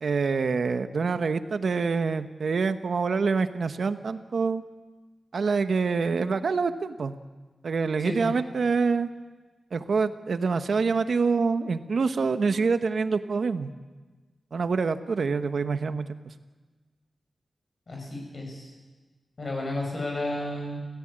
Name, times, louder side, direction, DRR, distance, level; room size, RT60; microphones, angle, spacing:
voice 1, 0.0-4.6 5.3-7.2 7.6-9.1 9.7-13.7 14.5-16.3, right 4 dB, 60° right, 9 dB, 1.2 m, -26 dB
voice 2, 8.0-8.3 17.9-18.7 19.4-20.8, left 1 dB, 40° left, 1 dB, 6.6 m, -32 dB
29.5 x 15.5 x 8.9 m, 1.3 s
wide cardioid pair, 160°, 0 cm